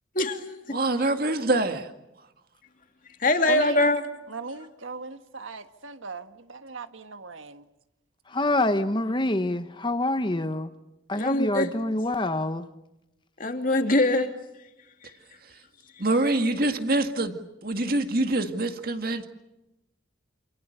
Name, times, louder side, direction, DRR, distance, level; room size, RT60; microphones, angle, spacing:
voice 1, 0.1-0.8 3.2-4.0 11.1-11.7 13.4-14.3 15.0-15.1, left 2 dB, 45° left, 2.7 m, -23 dB
voice 2, 0.7-1.9 16.0-17.3 17.6-19.3, right 2 dB, 50° right, 2.1 m, -25 dB
voice 3, 3.5-3.9 4.3-7.6, right 3 dB, 85° right, 1.6 m, -37 dB
voice 4, 8.3-10.7 11.1-12.7, left 1 dB, 25° left, 1.0 m, -26 dB
28.0 x 28.0 x 6.8 m
head